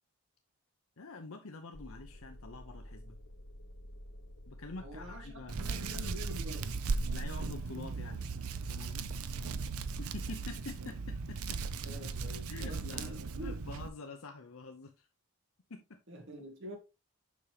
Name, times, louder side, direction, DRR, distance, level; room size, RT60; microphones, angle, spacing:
voice 1, 1.0-3.2 4.5-6.1 7.1-8.2 8.7-9.0 10.0-11.6 12.5-15.1 15.7-15.8, left 3 dB, 65° left, 0.8 m, -47 dB
sound 1, 1.7-6.8, equal, 80° left, 1.1 m, -50 dB
voice 2, 4.8-6.9 9.2-9.8 11.8-13.6 16.1-16.8, equal, 55° right, 2.0 m, -47 dB
Hands, 5.5-13.9, right 4 dB, 75° right, 0.6 m, -37 dB
7.3 x 5.6 x 3.3 m
head